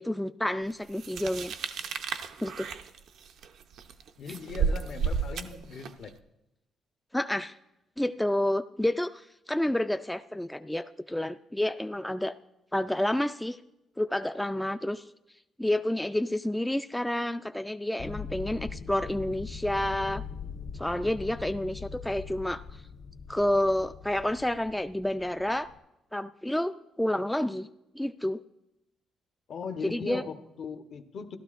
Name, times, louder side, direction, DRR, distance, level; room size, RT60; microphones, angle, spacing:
voice 1, 0.0-1.5 2.4-2.7 7.1-7.5 8.0-9.2 9.5-12.3 12.7-13.6 14.0-15.0 15.6-20.2 20.8-22.6 23.3-25.7 26.1-27.7 28.0-28.4 29.8-30.2, left 1 dB, 5° left, 8 dB, 0.3 m, -29 dB
sound 1, 1.0-6.1, right 6 dB, 75° right, 0.6 m, -32 dB
voice 2, 4.2-6.1 29.5-31.4, left 5 dB, 60° left, 7 dB, 0.9 m, -39 dB
sound 2, 18.0-25.8, left 6 dB, 90° left, 2.0 m, -41 dB
14.5 x 12.0 x 2.5 m, 0.91 s
cardioid pair, 90°, 0 cm